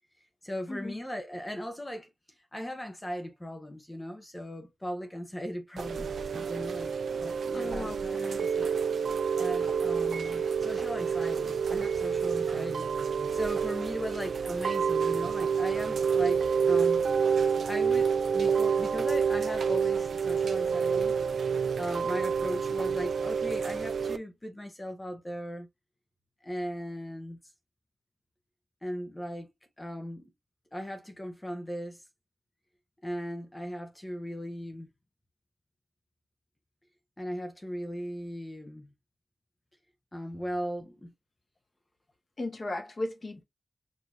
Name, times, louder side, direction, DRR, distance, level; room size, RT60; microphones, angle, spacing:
voice 1, 0.4-2.1 2.5-6.9 7.2-8.7 9.4-17.0 17.4-21.2 21.8-25.7 26.4-27.4 28.8-29.5 29.8-30.3 30.7-32.0 33.0-34.9 37.2-38.9 40.1-41.1, equal, 15° left, 0.6 m, -38 dB
Chime / Rain, 5.8-24.2, right 6 dB, 85° right, 0.4 m, -28 dB
voice 2, 7.5-8.5 42.4-43.4, left 2 dB, 40° left, 1.0 m, -36 dB
6.2 x 2.7 x 2.3 m
wide cardioid pair, 160°, 0 cm